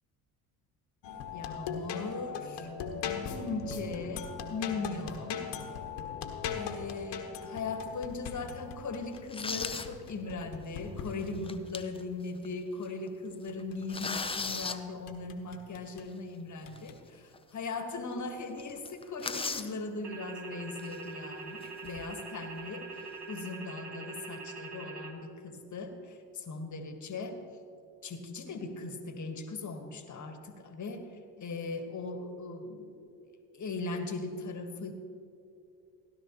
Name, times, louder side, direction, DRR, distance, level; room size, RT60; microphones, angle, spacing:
sound 1, 1.0-11.7 13.5-14.7 15.1-16.1 16.7-17.0, left 6 dB, 60° left, 1.2 m, -40 dB
voice 1, 1.3-2.7 3.2-5.5 6.5-22.9 23.3-27.4 28.0-31.1 31.4-33.2 33.5-34.9, left 3 dB, 35° left, 6 dB, 1.4 m, -39 dB
sound 2, 7.8-8.0 8.5-8.6 9.1-9.9 10.4-10.5 11.3-12.0 12.4-12.5 12.8-13.1 13.4-14.8 16.8-16.9 17.3-17.4 17.7-17.8 18.1-18.3 18.6-19.7 20.8-21.0 21.6-22.2, left 4 dB, 10° left, 0.6 m, -37 dB
sound 3, 20.0-25.1, right 4 dB, 55° right, 1.4 m, -43 dB
16.0 x 11.5 x 3.0 m, 2.6 s
hypercardioid pair, 65°, 48 cm